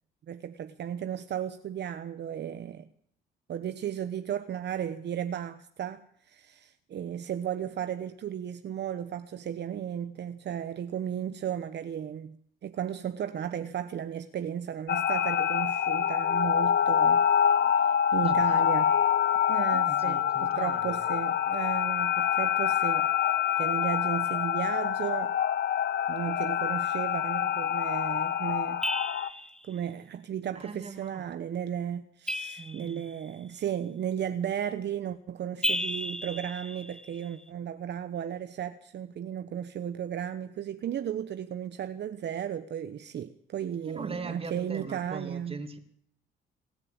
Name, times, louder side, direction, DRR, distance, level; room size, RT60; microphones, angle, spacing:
voice 1, 0.3-2.9 3.5-12.4 12.6-17.2 18.1-19.0 19.5-23.1 23.6-25.4 26.1-28.8 29.7-45.6, right 9 dB, 60° right, 1.1 m, -34 dB
sound 1, 14.9-29.3, left 9 dB, 60° left, 1.2 m, -26 dB
voice 2, 18.2-18.6 19.7-21.1 30.5-31.2 32.6-33.0 43.9-45.8, right 4 dB, 30° right, 2.9 m, -41 dB
sound 2, 28.8-29.6 32.3-33.3 35.6-37.3, left 1 dB, 5° left, 1.4 m, -33 dB
27.5 x 11.0 x 8.9 m
cardioid pair, 90°, 20 cm